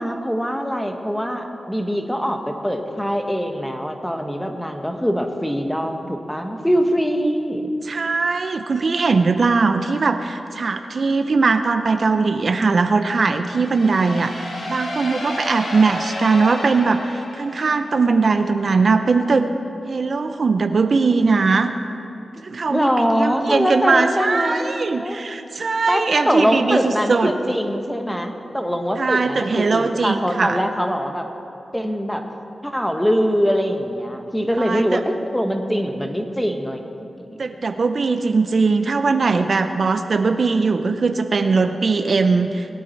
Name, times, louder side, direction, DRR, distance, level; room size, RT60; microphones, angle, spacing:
voice 1, 0.0-7.7 22.7-25.2 25.8-31.3 31.7-32.2 32.6-37.4, equal, 5° left, 4 dB, 1.5 m, -23 dB
voice 2, 7.8-19.5 19.9-21.7 22.4-27.3 29.0-30.6 34.5-35.0 37.4-42.7, right 4 dB, 65° right, 8 dB, 0.6 m, -20 dB
sound 1, 13.5-18.2, left 1 dB, 90° left, 2.0 m, -32 dB
20.5 x 8.6 x 4.6 m, 2.7 s
cardioid pair, 45°, 0 cm